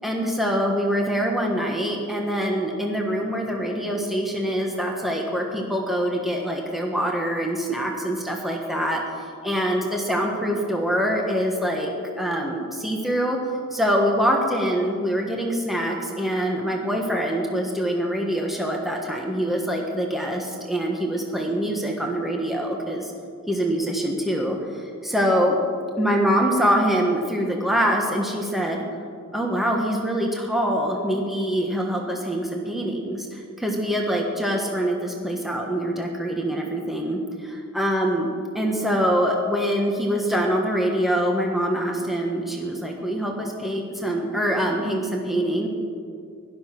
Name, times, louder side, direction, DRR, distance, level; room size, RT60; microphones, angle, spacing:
voice 1, 0.0-9.0 9.4-11.9 12.2-13.4 13.7-23.1 23.5-25.6 26.0-28.8 29.3-38.3 38.5-45.7, equal, ahead, 0 dB, 1.4 m, -24 dB
16.5 x 12.0 x 6.0 m, 2.3 s
head